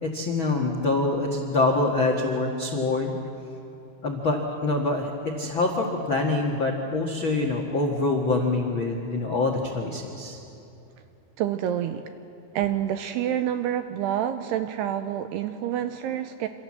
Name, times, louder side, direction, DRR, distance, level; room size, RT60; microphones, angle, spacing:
voice 1, 0.0-3.2 4.0-10.4, left 2 dB, 75° left, 3 dB, 1.1 m, -25 dB
voice 2, 11.4-12.1 12.5-16.5, right 10 dB, 80° right, 9 dB, 2.4 m, -28 dB
27.5 x 27.0 x 7.5 m, 2.8 s
omnidirectional pair, 5.4 m